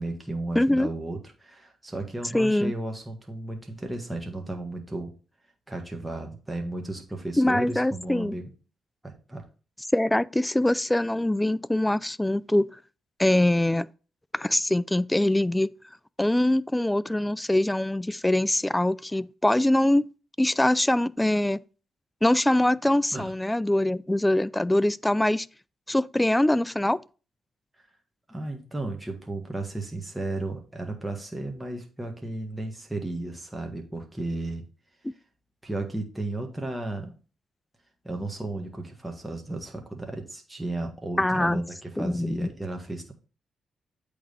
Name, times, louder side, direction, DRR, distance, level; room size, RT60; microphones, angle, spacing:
voice 1, 0.0-5.1 5.7-8.5 9.0-9.5 23.1-23.3 28.3-34.6 35.6-37.1 38.0-43.1, right 2 dB, 10° right, 1.6 m, -34 dB
voice 2, 0.6-0.9 2.3-2.7 7.4-8.3 9.9-12.7 13.2-13.9 14.3-15.7 16.2-20.1 20.4-21.6 22.2-25.5 25.9-27.0 41.2-41.6 42.0-42.5, left 1 dB, 10° left, 0.3 m, -23 dB
8.4 x 3.4 x 5.4 m
supercardioid pair, 60°, 0 cm